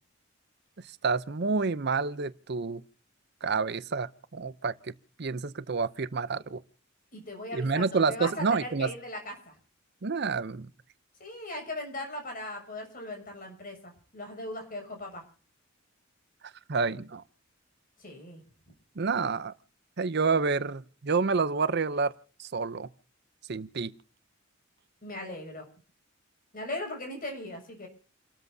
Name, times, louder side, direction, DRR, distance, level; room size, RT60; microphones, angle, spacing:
voice 1, 1.0-2.8 3.4-4.7 5.2-6.6 7.5-8.9 10.0-10.7 16.7-17.2 19.0-19.5 20.0-22.1 22.4-22.9 23.5-23.9, right 4 dB, 50° right, 0.6 m, -28 dB
voice 2, 7.1-9.6 11.2-15.2 18.0-18.4 25.0-25.7 26.5-27.9, left 1 dB, 40° left, 7.1 m, -38 dB
29.5 x 13.5 x 2.7 m
head